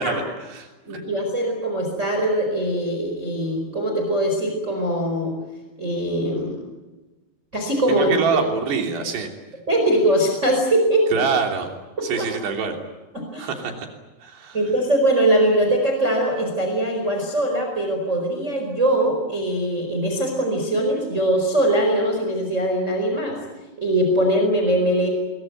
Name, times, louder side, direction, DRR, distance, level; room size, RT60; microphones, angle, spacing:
voice 1, 0.0-1.0 7.9-9.3 11.1-11.7 12.0-12.8 13.4-13.9 14.2-14.6, right 5 dB, 80° right, 4 dB, 5.3 m, -25 dB
voice 2, 0.8-5.3 5.8-6.6 7.5-8.1 9.7-11.1 12.2-12.3 13.1-13.5 14.5-23.4 23.8-25.1, right 1 dB, 15° right, 2 dB, 4.6 m, -21 dB
23.5 x 23.0 x 9.3 m, 1.2 s
omnidirectional pair, 4.8 m